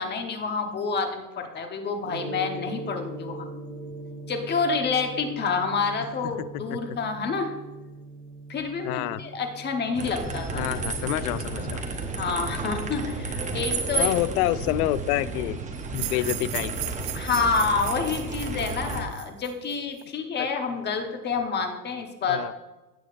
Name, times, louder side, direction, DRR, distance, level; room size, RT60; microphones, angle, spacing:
voice 1, 0.0-3.5 4.3-7.5 8.5-10.7 11.0-11.2 12.1-14.1 17.1-22.5, left 5 dB, 20° left, 5 dB, 1.1 m, -28 dB
Gong, 2.0-12.7, right 2 dB, 35° right, 1.8 m, -41 dB
voice 2, 6.2-7.0 8.8-9.2 10.5-11.8 13.9-15.6 15.9-16.7 20.4-20.5 22.3-22.5, left 15 dB, 70° left, 17 dB, 0.6 m, -28 dB
sound 1, 9.9-19.0, right 3 dB, 15° right, 0.9 m, -32 dB
sound 2, 15.9-20.0, right 18 dB, 50° right, 0.5 m, -37 dB
16.5 x 6.3 x 2.5 m, 1.1 s
supercardioid pair, 135°, 47 cm